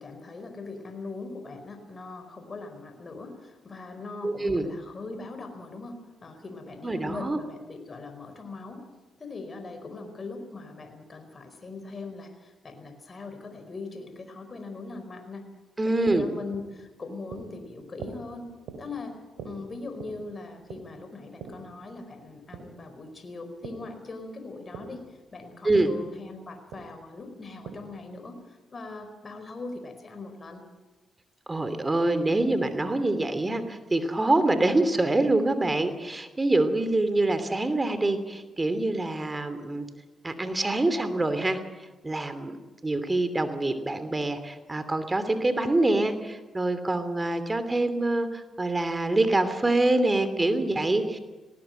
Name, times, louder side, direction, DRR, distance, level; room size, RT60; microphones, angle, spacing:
voice 1, 0.0-8.8 9.2-15.5 15.8-18.5 18.8-19.2 19.4-30.6, left 3 dB, 45° left, 7 dB, 4.7 m, -40 dB
voice 2, 4.2-4.7 6.8-7.4 15.8-16.3 25.6-25.9 31.5-39.9 40.2-41.6 42.0-42.6 42.8-51.2, right 2 dB, 25° right, 10 dB, 2.9 m, -25 dB
sound 1, 16.5-23.9 24.2-28.1, right 5 dB, 80° right, 3.2 m, -45 dB
19.0 x 18.5 x 9.1 m, 1.2 s
supercardioid pair, 45°, 0 cm